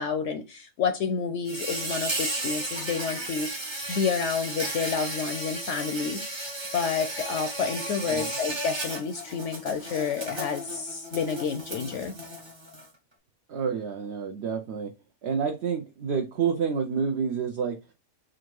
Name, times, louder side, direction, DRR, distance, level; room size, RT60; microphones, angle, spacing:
voice 1, 0.0-6.5 6.7-12.1, left 5 dB, 65° left, 0.8 m, -29 dB
Insect, 1.4-12.9, right 1 dB, 25° right, 0.7 m, -34 dB
voice 2, 13.5-14.9 15.2-17.8, right 6 dB, 60° right, 0.8 m, -28 dB
3.7 x 2.5 x 4.5 m
omnidirectional pair, 1.5 m